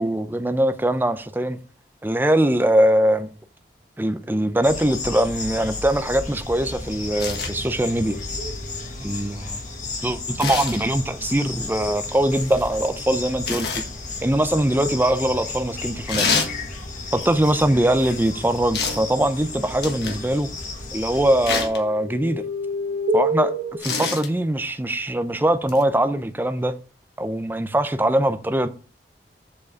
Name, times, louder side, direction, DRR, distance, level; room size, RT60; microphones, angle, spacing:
voice 1, 0.0-1.6 2.0-3.3 4.0-8.2 9.0-9.6 10.0-13.8 14.2-16.3 17.1-20.5 20.9-22.4 23.1-26.8 27.2-28.7, right 1 dB, 10° right, 0.5 m, -22 dB
sound 1, 4.6-21.7, left 3 dB, 45° left, 1.7 m, -33 dB
sound 2, 7.2-7.5 10.4-10.8 13.5-13.9 16.1-16.5 18.7-19.1 19.8-20.2 21.5-21.8 23.8-24.3 25.7-25.8, left 5 dB, 65° left, 1.4 m, -26 dB
sound 3, 7.4-8.9 16.7-20.3 20.6-23.8, equal, 75° right, 1.5 m, -32 dB
7.5 x 4.7 x 4.7 m
head